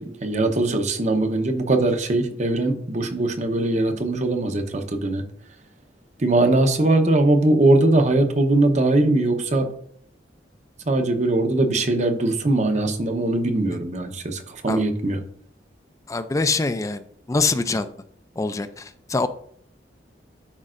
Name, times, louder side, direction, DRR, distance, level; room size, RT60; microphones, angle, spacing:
voice 1, 0.0-5.2 6.2-9.7 10.9-15.2, right 2 dB, 40° right, 6 dB, 0.9 m, -21 dB
voice 2, 16.1-17.0 17.3-17.9 18.4-19.3, left 3 dB, 20° left, 11 dB, 0.4 m, -24 dB
12.0 x 5.3 x 2.5 m, 0.63 s
head